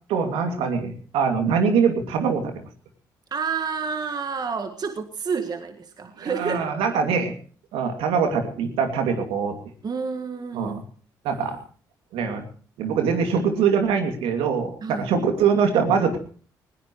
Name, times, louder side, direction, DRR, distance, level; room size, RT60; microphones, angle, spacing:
voice 1, 0.1-2.6 6.2-7.3 7.7-9.6 10.5-10.8 11.2-11.6 12.1-12.4 12.8-16.2, right 6 dB, 70° right, 5 dB, 2.6 m, -23 dB
voice 2, 3.3-6.8 9.8-10.8 14.8-15.1, right 5 dB, 45° right, 6 dB, 1.7 m, -29 dB
20.0 x 18.5 x 3.2 m, 0.41 s
hypercardioid pair, 50°, 10 cm